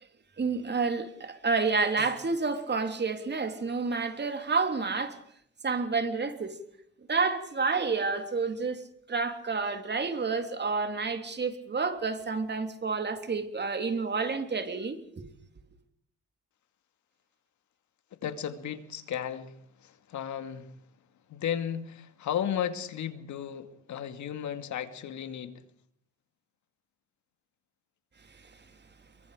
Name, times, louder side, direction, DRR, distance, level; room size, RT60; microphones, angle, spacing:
voice 1, 0.4-5.2 5.6-6.6 7.1-15.2, right 4 dB, 35° right, 3.3 m, -29 dB
voice 2, 18.2-20.7 21.3-25.6, left 9 dB, 70° left, 2.3 m, -34 dB
27.5 x 24.0 x 5.1 m
cardioid pair, 90°, 30 cm